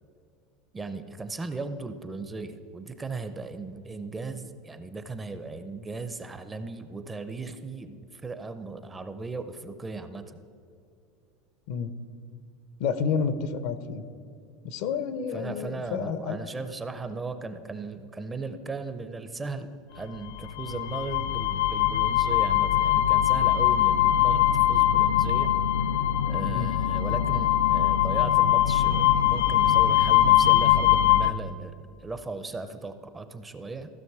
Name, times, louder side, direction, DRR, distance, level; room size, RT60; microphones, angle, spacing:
voice 1, 0.7-10.4 15.3-19.7 19.9-25.5 26.3-31.7 32.0-33.9, right 3 dB, 15° right, 10 dB, 0.5 m, -37 dB
voice 2, 12.8-14.0 14.6-16.4 26.4-26.7, left 6 dB, 65° left, 12 dB, 0.7 m, -30 dB
sound 1, 20.3-31.3, left 12 dB, 90° left, 0.4 m, -22 dB
15.0 x 6.1 x 4.7 m, 2.5 s
supercardioid pair, 145°, 0 cm